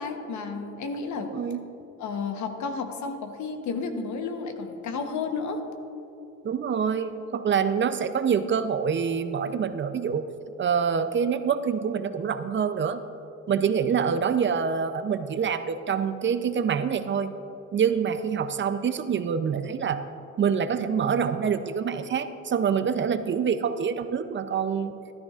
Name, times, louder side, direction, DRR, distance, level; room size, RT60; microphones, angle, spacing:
voice 1, 0.0-1.4 2.0-5.6, left 4 dB, 70° left, 6 dB, 1.0 m, -32 dB
voice 2, 1.2-1.6 6.4-10.3 10.6-13.0 13.5-17.3 17.7-20.0 20.4-25.0, right 7 dB, 40° right, 10 dB, 0.5 m, -26 dB
13.0 x 12.0 x 2.4 m, 2.8 s
cardioid pair, 90°, 30 cm